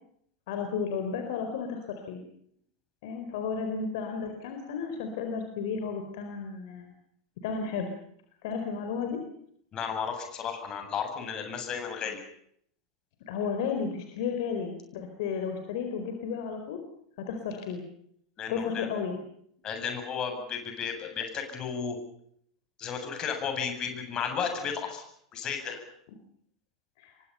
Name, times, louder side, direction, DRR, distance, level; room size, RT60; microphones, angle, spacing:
voice 1, 0.5-2.2 3.0-6.9 7.4-7.9 8.4-9.2 13.3-16.8 17.2-17.8 18.5-19.2 27.0-27.1, left 6 dB, 55° left, 5 dB, 4.4 m, -33 dB
voice 2, 9.7-12.2 18.4-18.9 19.6-22.0 22.8-25.0 25.3-25.8, left 6 dB, 30° left, 5 dB, 7.9 m, -33 dB
28.5 x 24.0 x 5.7 m, 0.68 s
figure-of-eight pair, 85°, 2 cm